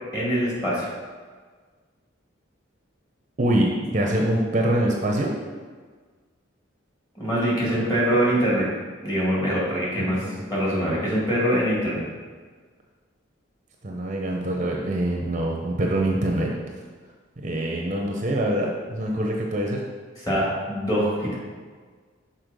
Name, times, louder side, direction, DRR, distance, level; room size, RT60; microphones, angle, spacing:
voice 1, 0.1-0.9 7.2-8.7 9.0-12.1 20.2-21.3, equal, 20° left, -7 dB, 2.1 m, -24 dB
voice 2, 3.4-5.3 7.7-7.9 13.8-16.5 17.4-19.8, right 1 dB, 40° right, -1 dB, 0.7 m, -24 dB
6.3 x 4.2 x 5.2 m, 1.5 s
head